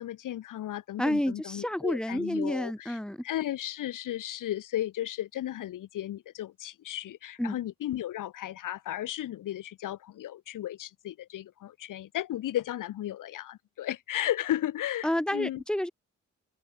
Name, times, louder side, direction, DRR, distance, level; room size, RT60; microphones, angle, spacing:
voice 1, 0.0-15.6, left 13 dB, 80° left, 1.2 m, -34 dB
voice 2, 1.0-3.2 7.4-7.6 15.0-15.9, left 1 dB, 5° left, 1.8 m, -29 dB
cardioid pair, 85°, 31 cm